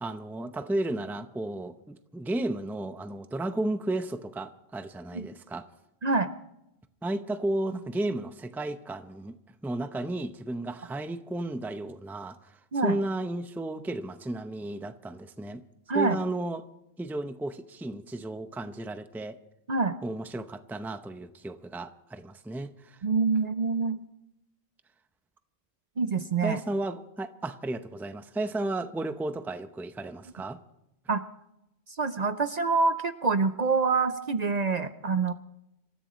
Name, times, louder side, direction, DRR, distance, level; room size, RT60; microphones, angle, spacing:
voice 1, 0.0-5.7 7.0-9.4 9.6-12.4 12.8-15.6 15.9-16.7 17.0-19.4 20.0-23.0 26.4-30.6, right 1 dB, ahead, 9 dB, 0.6 m, -33 dB
voice 2, 23.0-24.0 26.0-26.6 31.1-31.2 32.0-35.3, right 4 dB, 45° right, 10 dB, 0.7 m, -26 dB
26.5 x 14.5 x 3.1 m, 0.86 s
omnidirectional pair, 1.1 m